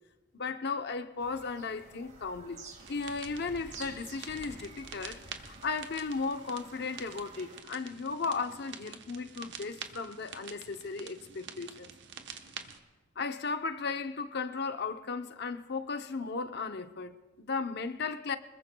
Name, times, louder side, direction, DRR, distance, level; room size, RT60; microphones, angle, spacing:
voice 1, 0.3-2.6 2.9-11.9 13.2-18.4, left 4 dB, 55° left, 0.7 m, -36 dB
Bird vocalization bird call bird song, 1.2-7.6, right 3 dB, 40° right, 2.0 m, -51 dB
sound 1, 2.8-12.8, right 7 dB, 65° right, 1.0 m, -47 dB
25.5 x 20.5 x 2.3 m
head